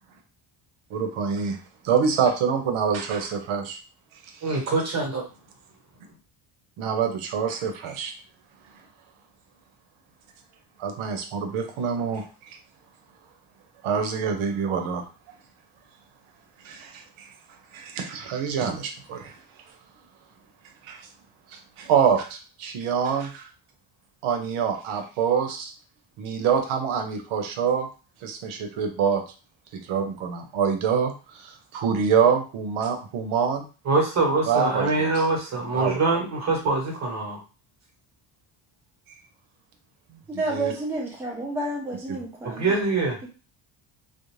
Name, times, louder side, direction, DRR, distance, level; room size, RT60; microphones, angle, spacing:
voice 1, 0.9-1.6 1.8-3.8 4.2-4.6 6.8-8.1 10.8-12.6 13.8-15.0 16.6-17.3 17.7-19.4 20.8-21.1 21.5-23.5 24.2-25.7 26.2-27.9 28.2-29.2 29.7-33.6 34.5-35.3 35.7-36.0 40.1-40.2 40.5-40.7 42.1-42.2, right 6 dB, 90° right, 5 dB, 0.7 m, -26 dB
voice 2, 4.4-5.2 33.8-37.4 42.4-43.2, right 3 dB, 35° right, 0 dB, 1.0 m, -24 dB
voice 3, 40.3-42.8, right 2 dB, 5° right, -2 dB, 0.4 m, -30 dB
2.5 x 2.0 x 3.0 m, 0.34 s
cardioid pair, 140°, 47 cm